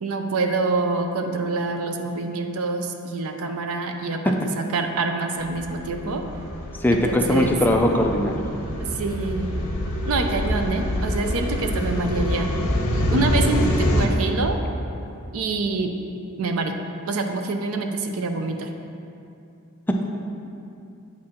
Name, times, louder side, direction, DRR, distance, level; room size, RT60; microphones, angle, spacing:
voice 1, 0.0-6.2 6.9-7.5 8.9-9.5 10.1-12.5 12.9-14.6 15.3-15.9 16.4-16.7 17.1-18.7, right 3 dB, 65° right, 5 dB, 0.5 m, -26 dB
sound 1, 5.4-14.1, left 1 dB, 65° left, 0.8 m, -26 dB
voice 2, 6.8-8.4, left 1 dB, 10° left, 2 dB, 0.3 m, -20 dB
8.5 x 4.4 x 3.7 m, 2.6 s
head